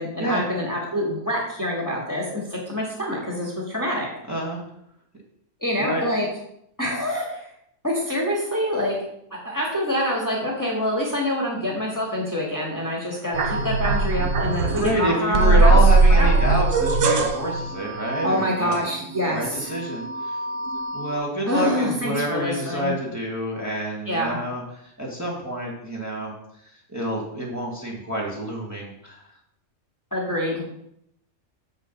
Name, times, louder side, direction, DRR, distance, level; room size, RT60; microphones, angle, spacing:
voice 1, 0.0-4.1 5.6-6.3 6.8-7.4 7.8-9.0 9.3-15.8 16.1-16.3 18.2-19.7 21.5-22.9 24.1-24.4 30.1-30.6, equal, 15° left, -3 dB, 1.8 m, -26 dB
voice 2, 4.3-4.6 5.8-6.1 14.7-18.8 19.3-20.4 20.9-26.3 26.9-29.2, equal, 10° right, -4 dB, 1.9 m, -27 dB
sound 1, 13.3-15.0 15.3-19.3 19.7-21.2, right 3 dB, 70° right, 1.2 m, -20 dB
7.4 x 6.5 x 5.4 m, 0.74 s
omnidirectional pair, 1.4 m